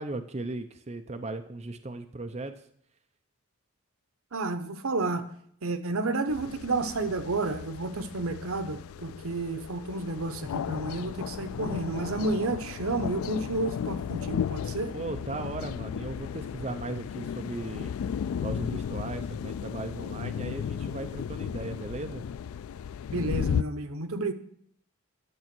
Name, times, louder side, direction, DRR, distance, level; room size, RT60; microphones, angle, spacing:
voice 1, 0.0-2.5 14.9-17.9 18.4-22.2, right 2 dB, 30° right, 6 dB, 0.5 m, -37 dB
voice 2, 4.3-5.3 5.6-14.9 23.1-24.3, right 2 dB, 80° right, 10 dB, 0.9 m, -31 dB
sound 1, 6.3-23.6, left 8 dB, 80° left, 0.3 m, -35 dB
11.0 x 7.0 x 6.0 m, 0.67 s
head